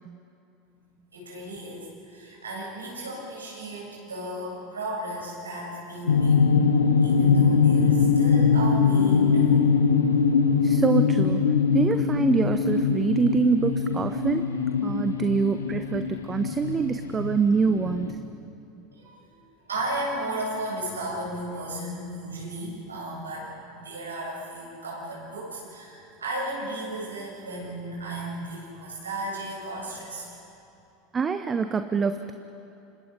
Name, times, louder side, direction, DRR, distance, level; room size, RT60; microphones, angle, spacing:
voice 1, 1.1-6.4 7.0-9.7 18.9-19.4 19.6-30.3, right 1 dB, 85° right, -4 dB, 8.0 m, -34 dB
sound 1, 6.1-18.1, left 5 dB, 80° left, 1.2 m, -22 dB
voice 2, 10.6-11.4 11.7-14.5 14.8-18.2 31.1-32.3, right 5 dB, 25° right, 9 dB, 0.9 m, -25 dB
29.0 x 26.5 x 5.3 m, 2.8 s
figure-of-eight pair, 80°, 0 cm